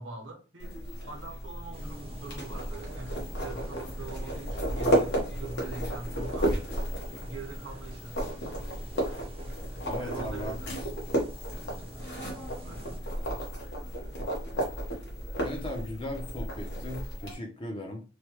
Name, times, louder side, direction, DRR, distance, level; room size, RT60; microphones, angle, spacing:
voice 1, 0.0-6.5 7.2-8.4 10.0-10.8 12.6-13.0, right 3 dB, 80° right, 0.9 m, -43 dB
sound 1, 0.6-17.3, right 1 dB, 60° left, 1.1 m, -33 dB
sound 2, 1.7-13.0, right 1 dB, 30° right, 0.5 m, -48 dB
voice 2, 9.9-10.5 15.4-18.0, left 1 dB, 25° left, 0.6 m, -37 dB
3.2 x 2.2 x 2.9 m
head